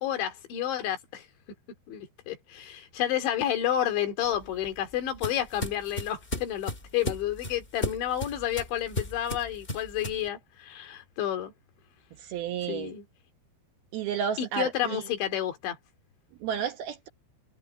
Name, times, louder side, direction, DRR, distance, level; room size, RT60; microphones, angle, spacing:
voice 1, 0.0-1.3 1.9-11.5 12.7-13.0 14.4-15.8, left 11 dB, 75° left, 4.9 m, -30 dB
sound 1, 4.2-10.3, left 1 dB, 20° left, 1.7 m, -36 dB
voice 2, 12.2-12.9 13.9-15.1 16.4-17.1, right 8 dB, 70° right, 2.7 m, -32 dB
omnidirectional pair, 5.3 m